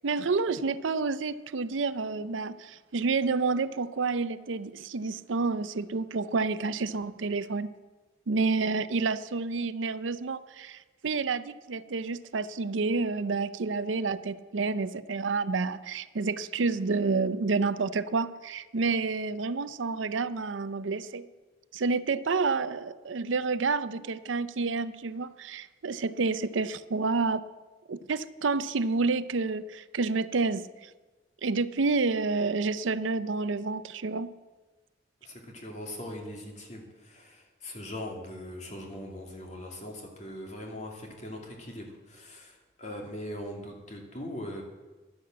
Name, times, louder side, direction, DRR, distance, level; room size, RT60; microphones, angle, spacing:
voice 1, 0.0-7.7 8.3-21.3 21.7-27.4 27.9-30.9 31.4-34.3, right 4 dB, 85° right, 14 dB, 0.6 m, -29 dB
voice 2, 35.2-44.6, left 1 dB, 35° left, 1 dB, 2.3 m, -41 dB
12.0 x 9.9 x 7.5 m, 1.2 s
head